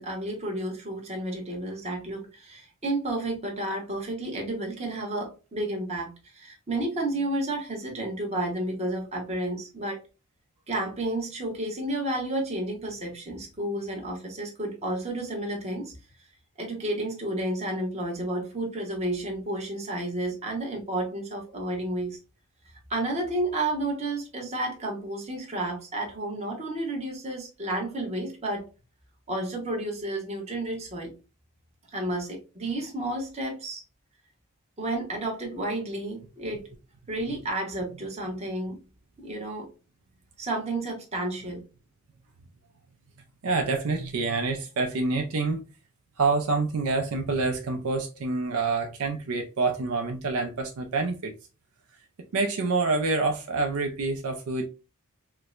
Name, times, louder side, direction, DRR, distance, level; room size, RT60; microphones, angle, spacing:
voice 1, 0.0-10.0 10.7-15.9 16.6-22.2 22.9-28.7 29.3-31.1 31.9-33.8 34.8-36.6 37.1-38.8 39.2-39.7 40.4-41.6, right 1 dB, 30° right, 1.0 m, -31 dB
voice 2, 43.4-45.6 46.2-51.3 52.3-54.7, right 3 dB, 70° right, 0.5 m, -27 dB
4.5 x 2.1 x 2.4 m
head